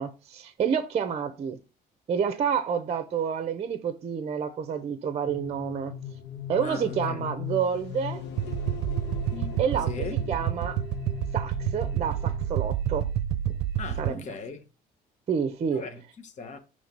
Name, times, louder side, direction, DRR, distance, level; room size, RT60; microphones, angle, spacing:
voice 1, 0.0-1.6 2.1-6.0 6.5-8.2 9.6-10.8 11.3-13.1 14.0-14.2 15.3-15.8, right 7 dB, 40° right, 0.6 m, -29 dB
sound 1, 5.2-12.5, left 8 dB, 90° left, 1.0 m, -38 dB
voice 2, 6.6-7.3 9.8-10.2 13.8-14.6 15.7-16.6, left 4 dB, 45° left, 1.0 m, -38 dB
sound 2, 8.4-14.1, right 11 dB, 80° right, 0.5 m, -29 dB
5.8 x 3.2 x 5.2 m
cardioid pair, 110°, 17 cm